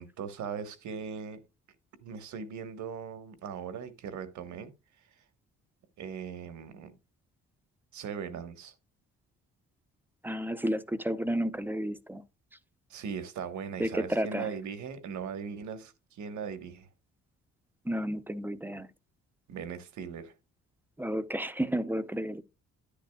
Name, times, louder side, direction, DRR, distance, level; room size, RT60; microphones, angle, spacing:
voice 1, 0.0-1.4 2.0-4.7 6.0-6.9 7.9-8.7 12.9-16.9 19.5-20.3, right 6 dB, 70° right, 1.3 m, -39 dB
voice 2, 10.2-12.2 13.8-14.5 17.9-18.9 21.0-22.4, right 1 dB, 5° right, 0.7 m, -31 dB
10.0 x 9.9 x 2.3 m
cardioid pair, 90°, 30 cm